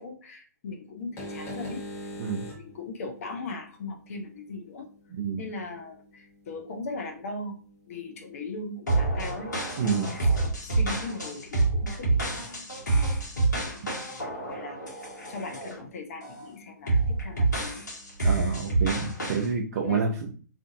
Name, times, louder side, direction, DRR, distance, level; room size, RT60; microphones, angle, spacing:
voice 1, 0.0-1.8 2.4-4.9 5.4-7.6 7.9-9.5 9.8-12.6 12.9-13.1 13.5-14.9 15.3-17.8 19.8-20.0, left 3 dB, 50° left, 4 dB, 0.5 m, -39 dB
sound 1, 1.0-18.3, equal, 25° left, 0.9 m, -48 dB
voice 2, 5.1-5.4 9.8-10.1 18.2-20.4, right 5 dB, 55° right, 1 dB, 0.5 m, -28 dB
sound 2, 8.9-15.8 16.2-16.5 16.9-19.5, right 3 dB, 80° left, 1.0 m, -27 dB
2.5 x 2.5 x 2.6 m, 0.40 s
figure-of-eight pair, 115°, 10 cm